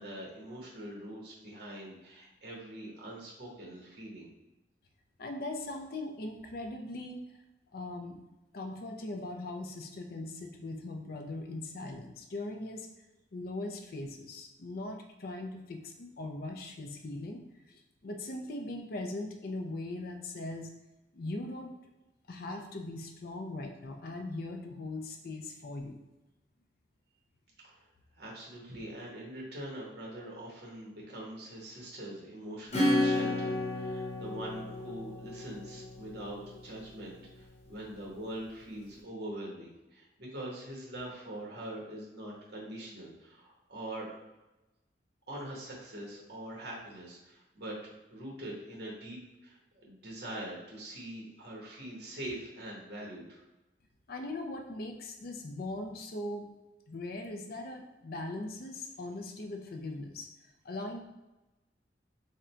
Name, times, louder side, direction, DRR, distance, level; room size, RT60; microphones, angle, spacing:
voice 1, 0.0-4.3 27.6-27.9 28.2-44.1 45.3-47.8 48.1-49.2 49.4-53.4, right 1 dB, 65° right, -3 dB, 1.3 m, -43 dB
voice 2, 5.2-7.3 7.7-8.2 8.5-12.9 13.3-17.4 18.0-20.7 21.1-21.7 22.3-26.0 54.1-56.5 56.9-60.3 60.6-61.0, left 2 dB, 55° left, 4 dB, 0.5 m, -40 dB
Acoustic guitar / Strum, 32.7-37.0, left 1 dB, 40° left, 1.0 m, -32 dB
3.7 x 2.2 x 4.3 m, 1.0 s
head